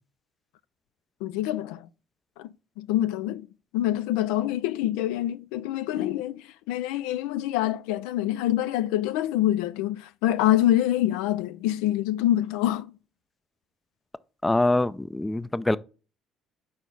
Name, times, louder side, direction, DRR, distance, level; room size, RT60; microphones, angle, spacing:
voice 1, 1.2-1.9 2.4-3.5 3.7-12.9, left 13 dB, 80° left, 0.3 m, -26 dB
voice 2, 14.4-15.8, left 2 dB, 15° left, 0.4 m, -24 dB
6.3 x 4.5 x 4.0 m
supercardioid pair, 70°, 0 cm